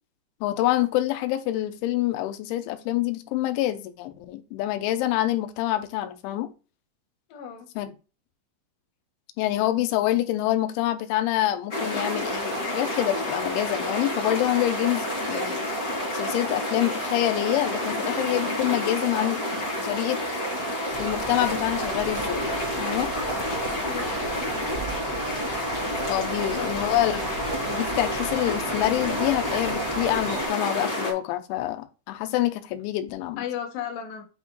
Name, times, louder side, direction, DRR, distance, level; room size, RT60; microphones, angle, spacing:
voice 1, 0.4-6.5 7.8-7.9 9.4-15.6 16.1-19.4 19.8-20.2 21.0-22.5 22.8-23.1 24.8-24.9 26.0-27.2 27.7-33.4, left 14 dB, 90° left, 3.2 m, -26 dB
voice 2, 7.3-7.7 23.8-24.9 26.5-26.9 33.4-34.2, left 9 dB, 60° left, 2.7 m, -36 dB
sound 1, 11.7-31.1, equal, 45° left, 1.1 m, -29 dB
Bicycle, 20.9-30.5, right 4 dB, 75° right, 4.6 m, -38 dB
9.0 x 4.3 x 3.1 m
omnidirectional pair, 5.3 m